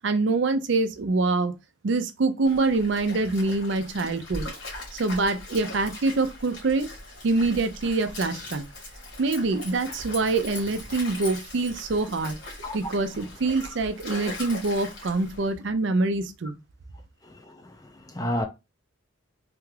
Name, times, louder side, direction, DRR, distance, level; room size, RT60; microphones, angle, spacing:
voice 1, 0.0-1.5 1.8-4.5 4.9-6.9 7.2-8.6 9.2-12.4 12.7-16.6, right 3 dB, 60° right, 0.4 m, -25 dB
Stream, 2.4-15.5, left 1 dB, 65° left, 1.6 m, -40 dB
voice 2, 17.2-18.5, left 1 dB, 15° left, 0.4 m, -32 dB
3.4 x 2.3 x 3.2 m
head